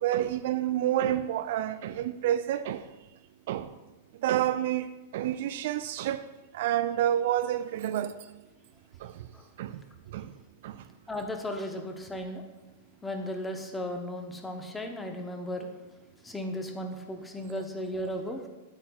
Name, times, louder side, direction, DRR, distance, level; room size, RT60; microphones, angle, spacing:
voice 1, 0.0-2.8 3.5-3.7 4.2-4.9 5.1-6.2 6.5-8.1 9.6-9.7 10.1-10.2 10.6-10.7, right 12 dB, 60° right, 0.3 m, -28 dB
voice 2, 11.1-12.4 13.0-15.7 16.2-18.4, left 1 dB, 10° left, 1.0 m, -35 dB
12.0 x 4.6 x 2.4 m
hypercardioid pair, 100°, 0 cm